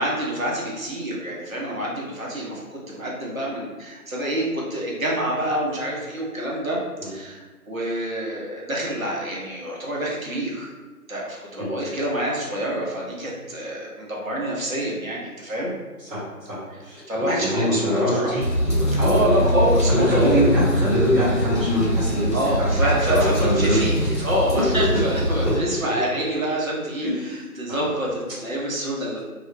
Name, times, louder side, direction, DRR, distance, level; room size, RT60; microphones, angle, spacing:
voice 1, 0.0-10.7 11.1-15.7 17.1-18.4 18.9-20.5 22.3-23.9 24.2-29.2, right 1 dB, 60° right, -4 dB, 0.8 m, -26 dB
voice 2, 16.0-19.5 19.9-24.3 24.5-24.6 27.0-27.1 27.7-27.9, equal, 35° right, -10 dB, 1.2 m, -24 dB
sound 1, 18.4-25.6, equal, 50° left, 1.0 m, -23 dB
2.3 x 2.1 x 3.0 m, 1.3 s
figure-of-eight pair, 170°, 47 cm